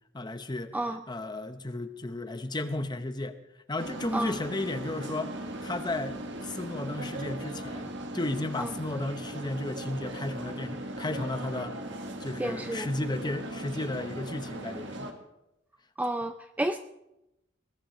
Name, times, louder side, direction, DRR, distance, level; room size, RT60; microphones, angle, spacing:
voice 1, 0.1-0.7 1.1-3.4 3.7-5.3 5.6-11.7 12.2-15.1, left 2 dB, 25° left, 9 dB, 0.9 m, -34 dB
sound 1, 3.8-15.1, right 1 dB, 70° right, 1.6 m, -38 dB
voice 2, 12.4-12.9 16.0-16.8, right 1 dB, 10° right, 7 dB, 0.4 m, -30 dB
21.5 x 15.5 x 3.1 m, 0.89 s
head